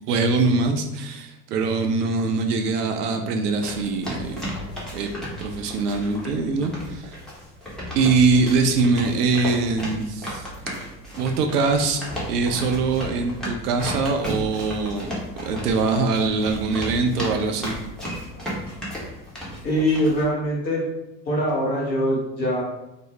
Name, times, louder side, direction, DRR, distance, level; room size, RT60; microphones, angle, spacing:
voice 1, 0.1-4.5 4.9-5.1 5.4-7.2 7.9-10.5 11.2-17.8, right 4 dB, 65° right, 5 dB, 0.5 m, -23 dB
sound 1, 3.5-20.2, equal, ahead, 0.6 m, -34 dB
voice 2, 19.6-20.8 21.2-22.6, equal, 90° left, -4 dB, 1.0 m, -23 dB
2.5 x 2.0 x 2.9 m, 0.93 s
figure-of-eight pair, 75°, 50 cm